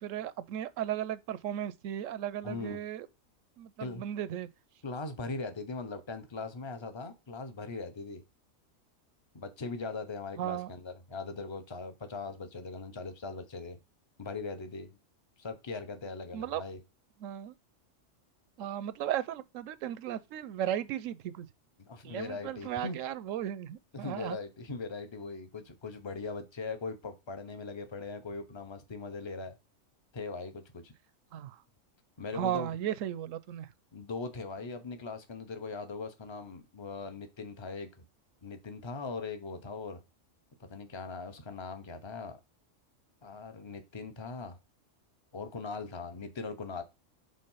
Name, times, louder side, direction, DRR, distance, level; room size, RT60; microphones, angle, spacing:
voice 1, 0.0-3.1 3.6-4.5 10.4-10.7 16.3-16.6 17.2-17.5 18.6-21.5 22.0-24.4 31.3-31.6 32.3-33.7, right 11 dB, 85° right, 1.0 m, -35 dB
voice 2, 2.4-2.8 3.8-4.0 4.8-8.2 9.3-13.8 14.2-15.0 15.4-16.8 21.8-23.0 23.9-29.6 30.1-30.9 32.2-32.8 33.9-38.0 38.4-40.0 40.6-42.4 43.2-44.6 45.3-46.8, left 4 dB, 25° left, 0.8 m, -40 dB
5.5 x 3.8 x 5.5 m
omnidirectional pair, 1.3 m